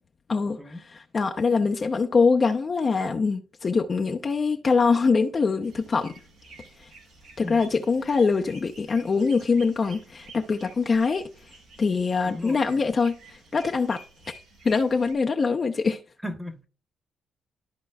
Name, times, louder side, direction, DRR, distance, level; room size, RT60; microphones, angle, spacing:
voice 1, 1.1-6.1 7.4-11.3 11.8-13.2 13.5-14.0 14.6-16.0, left 4 dB, 40° left, 0.7 m, -23 dB
sound 1, 5.6-15.1, right 3 dB, 80° right, 3.1 m, -51 dB
voice 2, 7.4-7.8 12.2-12.8 16.2-16.7, left 1 dB, ahead, 1.2 m, -37 dB
13.5 x 4.5 x 2.3 m
cardioid pair, 90°, 0 cm